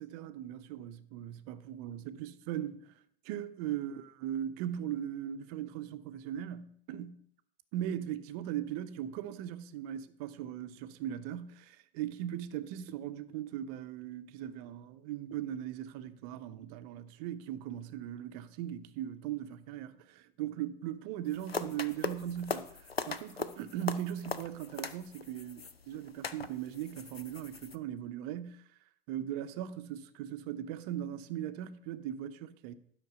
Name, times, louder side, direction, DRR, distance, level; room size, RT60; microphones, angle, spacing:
voice 1, 0.0-2.9 3.2-7.2 7.7-28.6 29.1-32.8, right 11 dB, 40° right, 0.7 m, -39 dB
sound 1, 21.3-27.8, left 4 dB, 90° left, 0.6 m, -40 dB
12.0 x 6.0 x 5.0 m
figure-of-eight pair, 90°, 29 cm